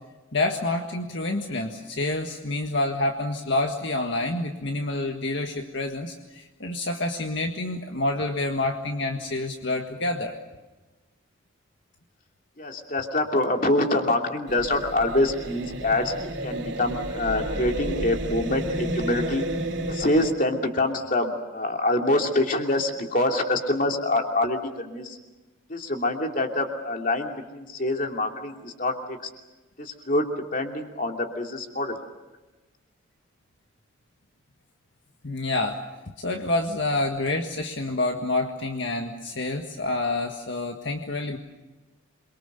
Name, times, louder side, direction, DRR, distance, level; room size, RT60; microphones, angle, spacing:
voice 1, 0.3-10.3 35.2-35.8 36.2-41.4, left 2 dB, 60° left, 3 dB, 1.7 m, -28 dB
voice 2, 12.6-16.1 16.4-19.5 19.9-25.2 25.7-29.3 29.8-32.0, left 1 dB, 40° left, 3 dB, 2.8 m, -25 dB
sound 1, 14.5-20.3, right 1 dB, 60° right, 2.8 m, -31 dB
28.0 x 23.5 x 6.8 m, 1.1 s
head